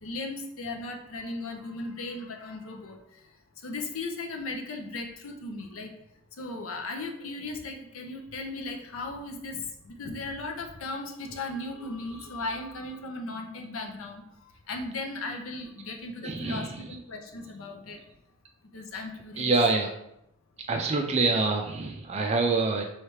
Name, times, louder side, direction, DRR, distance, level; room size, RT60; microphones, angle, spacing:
voice 1, 0.0-5.9 6.4-18.1 18.7-19.5 20.9-21.0, left 2 dB, 75° left, 2 dB, 0.6 m, -37 dB
voice 2, 16.2-16.8 19.4-19.9 20.7-22.8, right 3 dB, 30° right, 2 dB, 0.4 m, -26 dB
3.2 x 3.2 x 4.7 m, 0.80 s
head